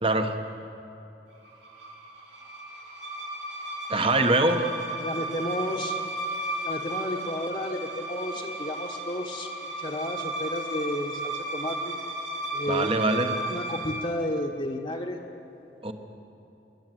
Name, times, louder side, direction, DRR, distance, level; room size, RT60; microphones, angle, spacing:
voice 1, 0.0-0.4 3.9-4.7 12.7-13.4 15.8-15.9, right 2 dB, 30° right, 7 dB, 1.3 m, -23 dB
sound 1, 1.4-14.1, right 2 dB, 85° right, 4.8 m, -34 dB
voice 2, 5.0-5.9 6.6-9.5 9.8-11.9 12.5-12.9 13.4-15.2, left 1 dB, 35° left, -3 dB, 1.4 m, -32 dB
27.5 x 12.0 x 9.4 m, 3.0 s
head